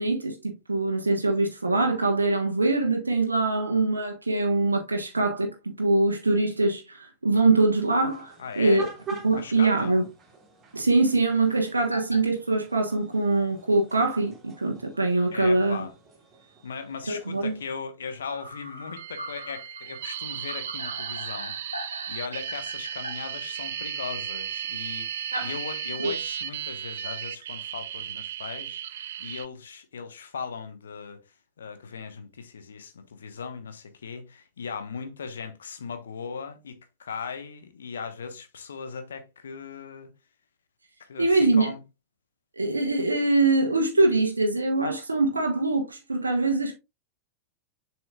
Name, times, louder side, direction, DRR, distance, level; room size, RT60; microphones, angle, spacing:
voice 1, 0.0-8.9 9.2-10.1 10.7-15.9 17.1-17.5 25.3-25.5 26.0-26.1 41.2-41.7 42.6-46.8, right 2 dB, 80° right, 1.3 m, -23 dB
sound 1, 7.8-17.8, right 4 dB, 25° right, 2.3 m, -44 dB
voice 2, 8.4-8.8 9.3-9.9 15.3-15.9 16.6-21.6 21.9-31.2 31.6-40.1 41.1-41.8, left 5 dB, 70° left, 1.2 m, -38 dB
sound 2, 11.9-12.2 12.7-12.8 14.2-14.3 14.9-15.0 15.3-15.4 18.2-23.1, equal, 90° left, 1.1 m, -40 dB
sound 3, 19.0-29.5, right 9 dB, 60° right, 0.5 m, -35 dB
7.2 x 6.0 x 2.4 m
figure-of-eight pair, 90°, 0 cm